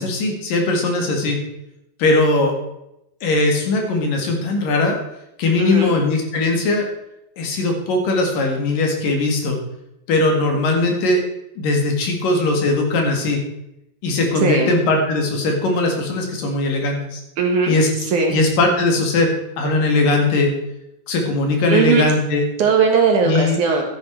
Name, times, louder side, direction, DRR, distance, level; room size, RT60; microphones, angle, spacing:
voice 1, 0.0-1.4 2.0-2.6 3.2-5.0 5.4-6.9 7.4-9.6 10.1-11.2 11.6-13.4 14.0-17.2 17.7-17.9 18.3-19.3 19.6-20.5 21.1-22.5 23.2-23.6, left 2 dB, 65° left, 2 dB, 3.5 m, -19 dB
voice 2, 5.6-5.9 14.4-14.7 17.4-17.8 18.1-18.4 21.7-22.0 22.6-23.8, right 5 dB, 60° right, 2 dB, 2.7 m, -18 dB
13.0 x 10.5 x 4.6 m, 0.84 s
omnidirectional pair, 4.5 m